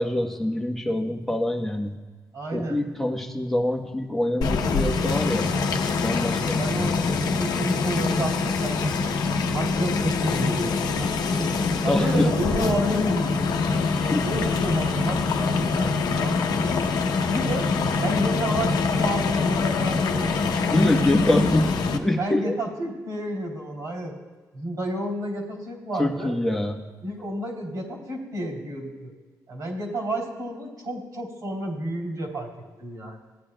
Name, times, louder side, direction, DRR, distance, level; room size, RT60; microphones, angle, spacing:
voice 1, 0.0-1.9 2.5-5.5 6.0-7.1 11.9-12.3 14.1-14.3 20.7-22.5 26.0-26.8, left 1 dB, 5° left, 1 dB, 1.0 m, -25 dB
voice 2, 2.3-2.8 6.4-8.9 9.2-11.5 11.8-13.8 14.2-16.7 17.3-17.7 18.0-20.4 22.2-24.1 24.5-26.4 27.0-29.1 29.5-32.5 32.8-33.2, right 1 dB, 60° right, 1 dB, 3.0 m, -31 dB
sound 1, 4.4-22.0, left 4 dB, 75° left, 0.8 m, -24 dB
16.0 x 9.7 x 2.2 m, 1.4 s
cardioid pair, 110°, 7 cm